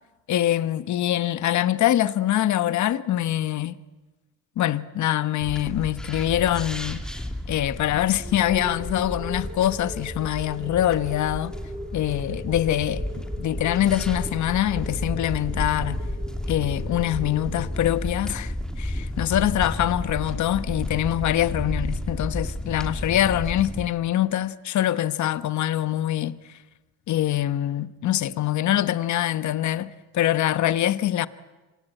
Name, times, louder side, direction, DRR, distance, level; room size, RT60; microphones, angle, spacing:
voice 1, 0.3-3.8 4.6-7.0 7.5-11.5 11.9-16.0 16.5-26.4 27.1-29.9 30.1-31.3, left 12 dB, 70° left, 1.1 m, -24 dB
sound 1, 5.4-23.9, left 1 dB, ahead, 2.8 m, -32 dB
sound 2, 8.2-17.7, right 1 dB, 25° right, 3.8 m, -41 dB
26.5 x 24.0 x 9.0 m
cardioid pair, 90°, 30 cm